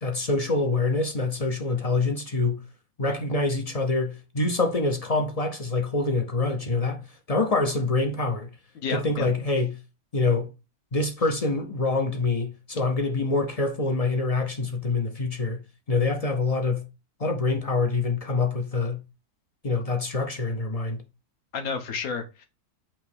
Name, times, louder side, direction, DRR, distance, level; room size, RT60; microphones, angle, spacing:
voice 1, 0.0-2.6 3.0-7.0 7.3-8.5 8.9-9.8 10.1-10.5 10.9-15.6 15.9-16.9 17.2-19.0 19.6-21.0, left 3 dB, 45° left, 0.5 m, -25 dB
voice 2, 8.8-9.3 21.5-22.5, left 5 dB, 65° left, 1.4 m, -31 dB
7.2 x 2.9 x 4.8 m
omnidirectional pair, 1.7 m